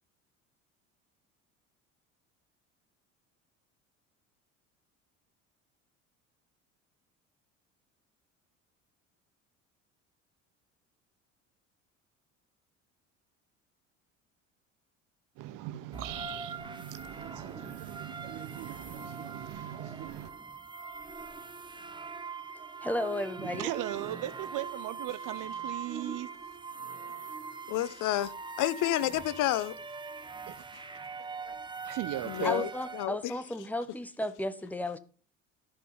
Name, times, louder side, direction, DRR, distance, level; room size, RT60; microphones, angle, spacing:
voice 1, 15.4-20.3 23.5-26.3 31.8-32.5, right 14 dB, 55° right, 0.9 m, -38 dB
sound 1, 15.9-33.1, right 4 dB, 10° right, 1.1 m, -42 dB
voice 2, 22.8-23.7 32.4-35.0, left 1 dB, 5° left, 1.3 m, -34 dB
voice 3, 27.7-29.8 32.2-33.3, left 14 dB, 55° left, 0.9 m, -30 dB
13.5 x 5.4 x 5.6 m
hypercardioid pair, 65°, 38 cm